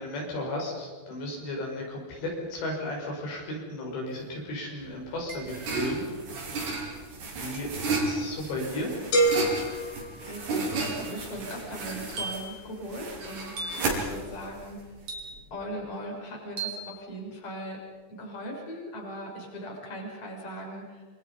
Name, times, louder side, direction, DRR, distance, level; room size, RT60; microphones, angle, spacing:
voice 1, 0.0-6.1 7.4-7.7 8.0-8.9, left 1 dB, 85° left, 0 dB, 8.2 m, -34 dB
sound 1, 4.1-4.2 5.3-5.8 7.5-7.9 9.2-9.5 10.8-11.1 12.2-12.6 13.6-14.0 15.1-15.6 16.6-16.9, right 3 dB, 40° right, 5.0 m, -38 dB
sound 2, 4.8-15.4, right 3 dB, 75° right, 6.9 m, -33 dB
sound 3, 9.1-11.0, right 1 dB, 60° left, 5.6 m, -27 dB
voice 2, 10.2-13.5 13.9-14.8 15.5-17.8 18.1-21.0, equal, 35° left, -1 dB, 7.1 m, -39 dB
28.0 x 27.5 x 5.6 m, 1.5 s
omnidirectional pair, 4.9 m